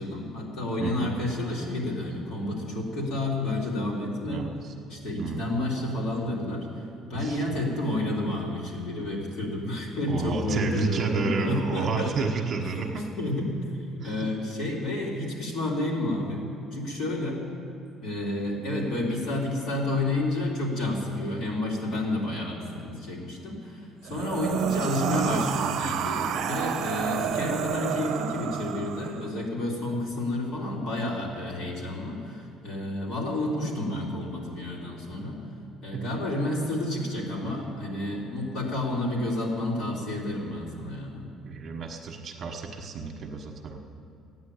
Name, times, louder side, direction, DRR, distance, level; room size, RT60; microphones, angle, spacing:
voice 1, 0.0-4.5 4.9-12.3 12.7-12.9 13.2-13.6 13.9-16.4 16.7-17.4 18.0-35.4 35.8-41.2, left 1 dB, 65° left, -3 dB, 3.6 m, -30 dB
voice 2, 0.8-1.1 4.3-4.7 5.2-5.4 7.1-7.4 10.1-13.1 14.0-14.3 24.1-24.2 35.9-36.0 41.4-43.8, right 5 dB, 35° right, 2 dB, 1.4 m, -31 dB
sound 1, 24.0-29.3, right 8 dB, 55° right, 0.7 m, -29 dB
15.0 x 9.7 x 8.6 m, 2.5 s
cardioid pair, 175°, 0 cm